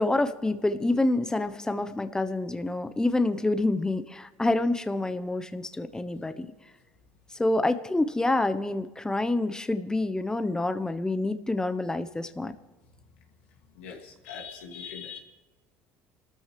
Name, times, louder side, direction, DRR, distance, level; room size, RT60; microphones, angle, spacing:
voice 1, 0.0-6.5 7.4-12.5, left 2 dB, 10° left, 11 dB, 1.0 m, -27 dB
voice 2, 13.8-15.2, left 6 dB, 90° left, 0 dB, 2.6 m, -41 dB
28.5 x 13.5 x 3.4 m, 1.2 s
hypercardioid pair, 80°, 6 cm